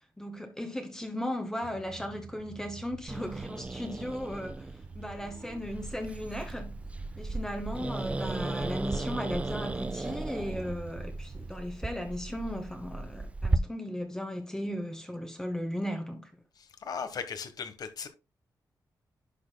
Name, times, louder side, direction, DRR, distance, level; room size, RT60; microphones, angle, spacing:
voice 1, 0.2-6.8 7.2-16.3, equal, 10° left, 1.0 m, -36 dB
sound 1, 1.6-11.6, right 4 dB, 55° right, 1.1 m, -48 dB
Growling, 3.1-13.6, right 2 dB, 20° right, 0.5 m, -35 dB
voice 2, 16.8-18.1, left 6 dB, 65° left, 1.2 m, -37 dB
11.0 x 6.1 x 2.2 m
wide cardioid pair, 135°, 7 cm